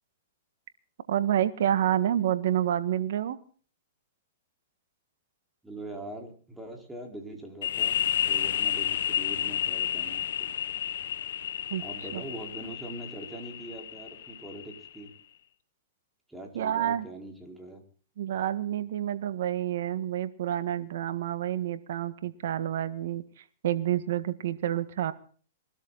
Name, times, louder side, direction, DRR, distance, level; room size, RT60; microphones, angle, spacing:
voice 1, 1.1-3.4 11.7-11.8 12.1-12.2 16.5-17.1 18.2-23.2 23.6-25.1, right 11 dB, 70° right, 12 dB, 1.7 m, -28 dB
voice 2, 5.6-8.0 8.2-10.5 11.8-15.1 16.3-17.8, right 1 dB, 5° right, 1 dB, 4.7 m, -42 dB
sound 1, 7.6-15.1, left 10 dB, 70° left, 1.3 m, -31 dB
23.0 x 13.0 x 4.1 m, 0.43 s
hypercardioid pair, 130°, 0 cm